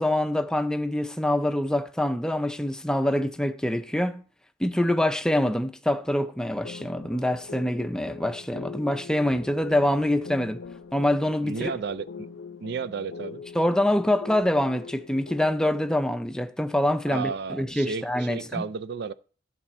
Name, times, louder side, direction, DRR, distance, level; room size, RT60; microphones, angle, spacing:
voice 1, 0.0-4.2 4.6-10.6 10.9-11.7 13.5-18.6, left 1 dB, 5° left, 0.5 m, -25 dB
sound 1, 6.6-15.9, left 5 dB, 90° left, 0.7 m, -42 dB
voice 2, 11.4-12.3 12.6-13.4 17.1-19.1, right 5 dB, 55° right, 0.4 m, -33 dB
12.5 x 6.7 x 4.3 m
head